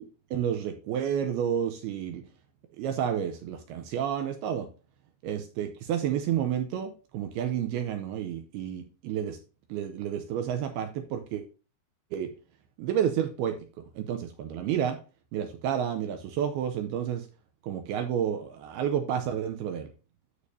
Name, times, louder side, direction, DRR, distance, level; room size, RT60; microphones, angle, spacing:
voice 1, 0.0-2.2 2.8-4.7 5.2-9.4 9.7-11.4 12.1-12.3 12.8-13.6 14.0-15.0 15.3-17.3 17.6-19.9, right 9 dB, 85° right, 7 dB, 2.3 m, -30 dB
13.0 x 5.1 x 2.7 m, 0.33 s
omnidirectional pair, 5.3 m